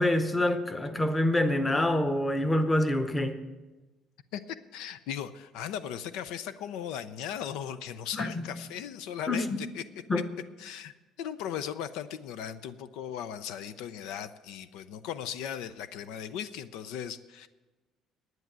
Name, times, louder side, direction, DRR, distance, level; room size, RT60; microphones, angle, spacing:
voice 1, 0.0-3.4 8.1-8.4 9.3-9.6 10.1-10.2, left 1 dB, 10° left, 10 dB, 0.9 m, -26 dB
voice 2, 4.3-9.8 10.1-10.2 10.6-10.9 11.2-17.5, left 9 dB, 80° left, 13 dB, 0.5 m, -37 dB
10.5 x 9.3 x 7.4 m, 1.2 s
cardioid pair, 135°, 0 cm